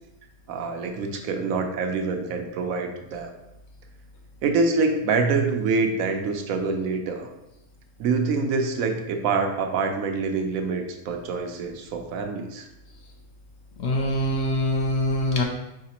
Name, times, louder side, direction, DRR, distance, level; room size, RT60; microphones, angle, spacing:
voice 1, 0.5-3.3 4.4-7.3 8.0-12.7, right 4 dB, 75° right, 5 dB, 1.0 m, -26 dB
voice 2, 13.8-15.4, left 1 dB, 65° left, 1 dB, 0.7 m, -24 dB
4.9 x 3.2 x 2.8 m, 0.90 s
omnidirectional pair, 1.5 m